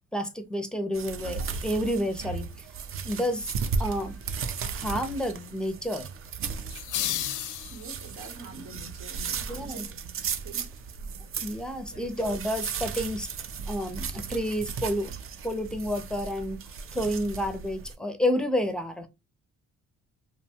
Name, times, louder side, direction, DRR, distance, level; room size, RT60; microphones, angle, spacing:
voice 1, 0.1-2.7 3.0-3.5 3.8-4.2 4.7-6.1 9.5-9.9 11.4-13.3 13.7-15.1 15.4-16.6 16.9-19.1, equal, 5° left, 0.5 m, -30 dB
sound 1, 0.9-17.9, right 5 dB, 45° right, 0.5 m, -36 dB
sound 2, 6.7-8.3, left 12 dB, 85° left, 0.5 m, -32 dB
voice 2, 7.7-9.9 10.4-10.7 11.9-12.1, right 2 dB, 75° right, 1.1 m, -45 dB
2.8 x 2.2 x 2.7 m
cardioid pair, 90°, 30 cm